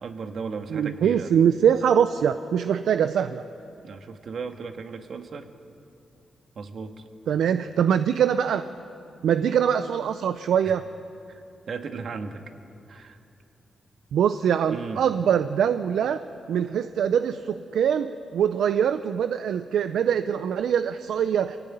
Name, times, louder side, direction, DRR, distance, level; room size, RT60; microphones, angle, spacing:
voice 1, 0.0-1.3 3.8-5.5 6.6-7.0 10.6-10.7 11.3-12.4 12.9-13.2 14.7-15.0, right 5 dB, 65° right, 6 dB, 1.7 m, -36 dB
voice 2, 0.7-3.4 7.3-8.6 9.2-10.8 14.1-16.2 16.5-21.6, right 8 dB, 80° right, 11 dB, 0.6 m, -23 dB
24.0 x 17.0 x 9.2 m, 2.7 s
cardioid pair, 60°, 0 cm